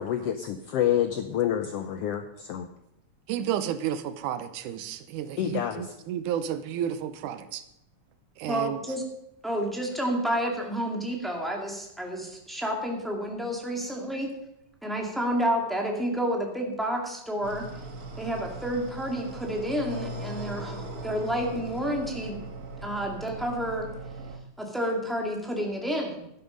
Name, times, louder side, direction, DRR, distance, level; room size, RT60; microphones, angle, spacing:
voice 1, 0.0-2.7 5.4-5.9, left 10 dB, 75° left, 7 dB, 1.4 m, -28 dB
voice 2, 3.3-7.6 8.4-8.8, right 10 dB, 90° right, 12 dB, 2.3 m, -32 dB
voice 3, 8.5-9.0 9.4-14.3 14.8-17.7 18.2-22.4 22.8-23.9 24.6-26.3, equal, ahead, 0 dB, 1.8 m, -30 dB
sound 1, 17.4-24.4, right 2 dB, 45° right, 1.3 m, -39 dB
12.0 x 11.0 x 5.2 m, 0.80 s
omnidirectional pair, 3.5 m